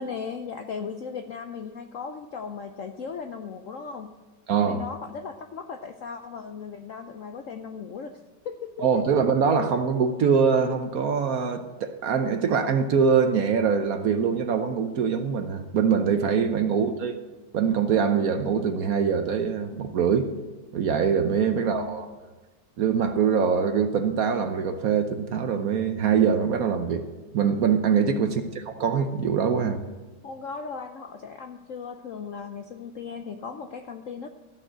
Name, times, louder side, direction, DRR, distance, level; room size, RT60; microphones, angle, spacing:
voice 1, 0.0-4.1 4.6-8.2 8.4-9.0 16.7-16.8 21.6-21.9 28.2-28.4 30.2-34.3, left 5 dB, 70° left, 5 dB, 0.8 m, -37 dB
voice 2, 4.5-4.8 8.8-17.2 17.5-20.3 20.7-22.1 22.8-27.0 27.3-29.8, right 6 dB, 65° right, 7 dB, 1.0 m, -23 dB
13.5 x 6.3 x 7.9 m, 1.2 s
omnidirectional pair, 2.0 m